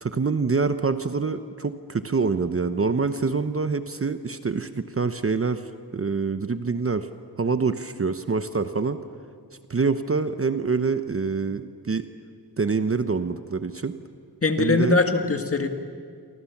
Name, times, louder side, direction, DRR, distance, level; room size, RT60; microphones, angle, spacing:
voice 1, 0.0-5.6 5.9-7.1 7.4-9.0 9.7-12.1 12.6-14.0 14.6-14.9, right 4 dB, 35° right, 10 dB, 0.9 m, -25 dB
voice 2, 14.4-15.7, left 3 dB, 35° left, 6 dB, 1.9 m, -21 dB
28.5 x 24.5 x 7.3 m, 2.2 s
wide cardioid pair, 145°, 41 cm